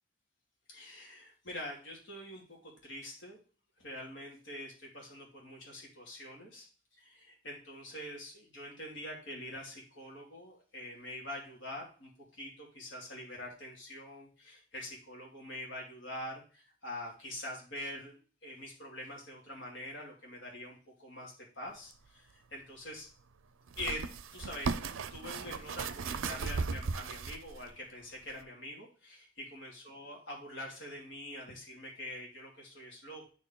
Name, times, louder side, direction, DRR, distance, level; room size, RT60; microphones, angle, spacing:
voice 1, 0.7-3.4 3.8-6.7 7.0-23.1 23.8-24.0 24.3-24.7 25.1-33.3, left 1 dB, 65° left, -2 dB, 2.7 m, -45 dB
sound 1, 21.9-22.0 23.7-27.7 28.3-28.4, right 4 dB, 85° right, 0.5 m, -36 dB
9.4 x 4.5 x 3.8 m, 0.38 s
head